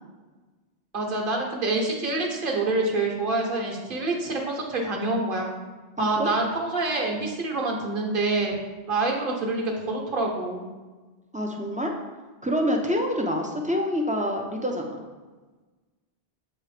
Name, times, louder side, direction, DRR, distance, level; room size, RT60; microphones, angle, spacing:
voice 1, 0.9-5.5 6.0-8.5 8.9-10.6, right 2 dB, 55° right, 0 dB, 1.2 m, -26 dB
voice 2, 6.0-6.3 11.3-11.9 12.4-14.9, equal, 10° right, 1 dB, 0.3 m, -26 dB
7.4 x 3.0 x 4.9 m, 1.3 s
omnidirectional pair, 1.1 m